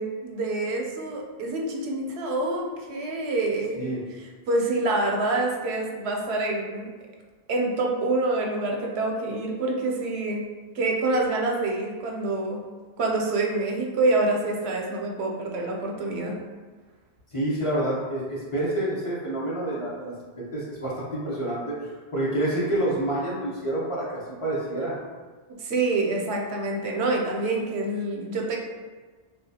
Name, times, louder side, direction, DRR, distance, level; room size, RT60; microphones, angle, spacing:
voice 1, 0.0-3.9 4.5-6.9 7.5-10.5 10.7-12.6 13.0-16.3 25.6-28.6, right 2 dB, 85° right, 0 dB, 0.8 m, -26 dB
voice 2, 17.3-21.8 22.1-25.0, right 1 dB, 35° left, -8 dB, 0.8 m, -28 dB
3.6 x 2.3 x 2.7 m, 1.4 s
omnidirectional pair, 1.1 m